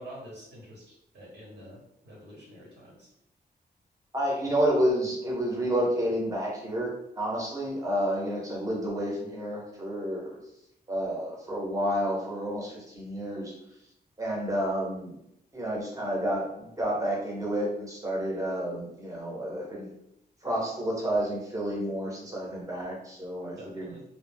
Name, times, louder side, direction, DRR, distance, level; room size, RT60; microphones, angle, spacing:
voice 1, 0.0-3.1 23.6-24.0, equal, 90° right, -5 dB, 1.1 m, -47 dB
voice 2, 4.1-10.4 10.9-13.5 14.2-15.2 15.5-19.9 20.4-23.9, equal, 20° right, -3 dB, 0.8 m, -30 dB
2.2 x 2.1 x 3.3 m, 0.77 s
wide cardioid pair, 145°, 17 cm